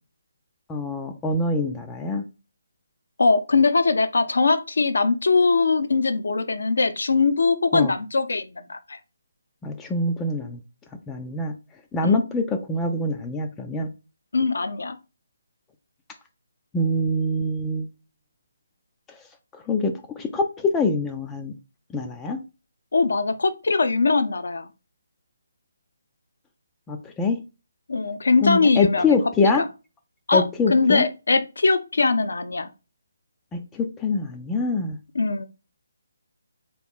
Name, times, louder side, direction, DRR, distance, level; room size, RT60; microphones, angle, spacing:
voice 1, 0.7-2.2 7.7-7.9 9.6-10.6 11.1-11.5 11.9-13.9 16.7-17.9 19.5-21.5 21.9-22.4 26.9-27.4 28.4-29.6 30.3-31.0 33.5-35.0, left 3 dB, 10° left, 0.4 m, -24 dB
voice 2, 3.2-9.0 12.0-12.2 14.3-15.0 22.9-24.7 27.9-29.2 29.4-29.7 30.3-30.4 30.7-32.7 35.1-35.4, left 4 dB, 70° left, 0.6 m, -21 dB
3.7 x 3.0 x 3.5 m
figure-of-eight pair, 150°, 0 cm